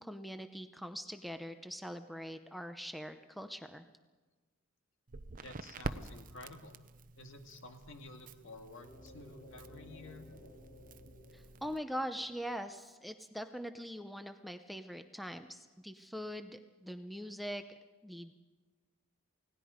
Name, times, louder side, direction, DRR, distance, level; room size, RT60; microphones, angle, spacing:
voice 1, 0.0-3.8 11.3-17.6 18.0-18.3, equal, ahead, 8 dB, 0.7 m, -42 dB
Crackle, 5.1-11.8, right 3 dB, 40° right, 0.7 m, -47 dB
voice 2, 5.4-6.8 7.2-10.3, left 2 dB, 60° left, 5 dB, 2.1 m, -51 dB
sound 1, 8.8-12.7, left 1 dB, 40° left, 4.3 m, -56 dB
29.0 x 18.0 x 5.1 m, 1.3 s
head